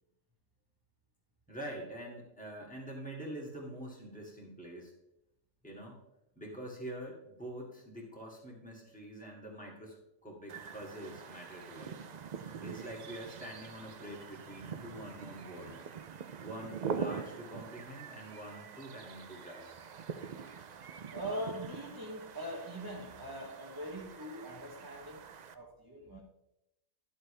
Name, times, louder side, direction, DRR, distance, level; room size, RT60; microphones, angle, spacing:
voice 1, 1.5-4.9 5.6-6.0 6.4-12.1 12.6-15.9 16.4-19.7, right 1 dB, 5° left, -3 dB, 2.5 m, -45 dB
sound 1, 10.5-25.5, right 6 dB, 65° right, 0.4 m, -44 dB
voice 2, 21.1-25.3 25.5-26.2, right 1 dB, 15° right, -1 dB, 1.1 m, -42 dB
12.0 x 7.7 x 3.4 m, 0.84 s
omnidirectional pair, 1.4 m